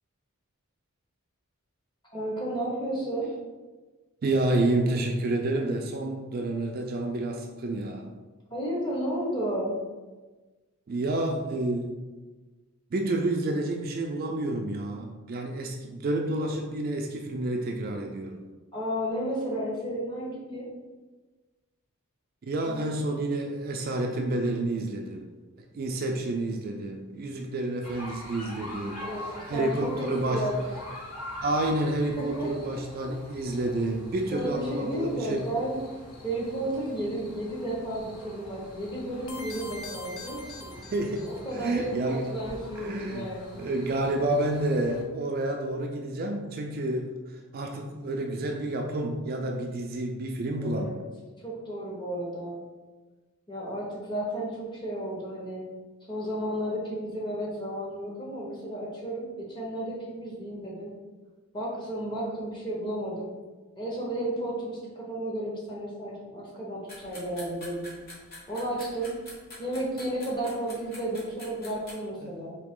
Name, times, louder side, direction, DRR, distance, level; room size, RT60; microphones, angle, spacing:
voice 1, 2.1-3.3 8.5-9.7 18.7-20.7 22.7-22.9 29.0-30.6 32.2-32.5 34.3-35.8 36.2-40.7 41.2-43.6 50.6-51.0 51.4-52.6 53.5-55.6 56.1-60.9 61.5-63.3 63.8-67.9 68.5-69.1 69.6-72.6, right 1 dB, 20° left, -4 dB, 0.9 m, -33 dB
voice 2, 4.2-8.1 10.9-11.9 12.9-18.4 22.4-25.3 25.7-30.4 31.4-35.5 40.9-42.2 42.8-43.3 43.6-47.1 47.5-51.0 72.2-72.3, right 2 dB, 40° right, 3 dB, 0.3 m, -29 dB
sound 1, 27.8-45.0, left 1 dB, 90° left, 1.5 m, -44 dB
sound 2, 39.3-41.6, left 2 dB, 60° left, 0.5 m, -42 dB
sound 3, 66.9-71.9, left 1 dB, 45° left, 1.2 m, -46 dB
3.9 x 2.8 x 3.6 m, 1.3 s
head